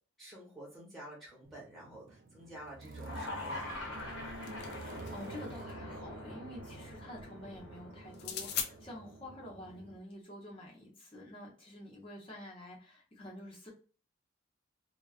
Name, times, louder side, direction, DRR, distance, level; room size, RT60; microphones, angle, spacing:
voice 1, 0.2-4.1, right 1 dB, ahead, -6 dB, 0.9 m, -50 dB
sound 1, 1.4-10.0, right 2 dB, 45° right, 0.3 m, -49 dB
sound 2, 3.0-9.2, left 2 dB, 80° left, 1.0 m, -45 dB
sound 3, 4.1-5.4 8.1-8.7, left 8 dB, 55° left, 0.3 m, -39 dB
voice 2, 4.7-13.7, left 1 dB, 25° left, -3 dB, 0.8 m, -48 dB
2.3 x 2.3 x 2.3 m, 0.38 s
head